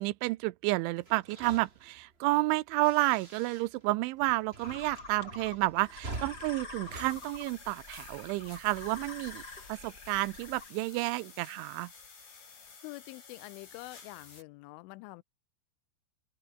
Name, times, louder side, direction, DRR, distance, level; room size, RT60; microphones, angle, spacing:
voice 1, 0.0-9.4 9.7-11.9, right 20 dB, 85° right, 3.0 m, -30 dB
sound 1, 1.0-8.1, right 2 dB, 15° right, 2.8 m, -47 dB
sound 2, 4.6-10.7, left 3 dB, 20° left, 4.6 m, -47 dB
sound 3, 6.9-14.4, left 5 dB, 65° left, 9.6 m, -52 dB
voice 2, 12.8-15.2, left 21 dB, 85° left, 3.1 m, -46 dB
open air
omnidirectional pair, 5.5 m